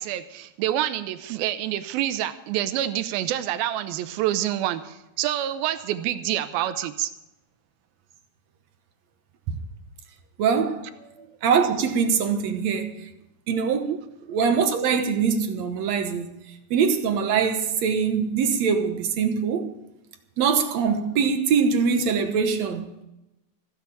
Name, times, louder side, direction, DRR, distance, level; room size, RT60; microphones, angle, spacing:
voice 1, 0.0-7.1 13.9-14.0, right 12 dB, 90° right, 2.6 m, -27 dB
voice 2, 10.4-13.1 13.5-13.9 14.3-19.7 20.4-22.9, right 6 dB, 65° right, 1.9 m, -23 dB
15.5 x 7.9 x 8.4 m
omnidirectional pair, 4.2 m